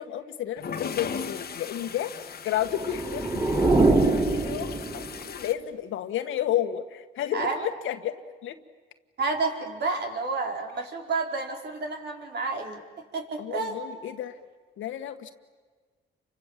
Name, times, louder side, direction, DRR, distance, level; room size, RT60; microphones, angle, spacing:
voice 1, 0.0-2.1 2.4-8.2 8.4-8.6 13.4-14.4 14.8-15.3, left 11 dB, 80° left, 8 dB, 1.7 m, -32 dB
sound 1, 0.6-5.5, left 6 dB, 50° left, 1.6 m, -38 dB
sound 2, 2.6-5.3, right 2 dB, 20° right, 3.9 m, -24 dB
voice 2, 7.3-7.6 9.2-12.8 13.1-13.8, right 3 dB, 55° right, 2 dB, 4.8 m, -30 dB
30.0 x 25.5 x 7.6 m, 1.5 s
cardioid pair, 90°, 20 cm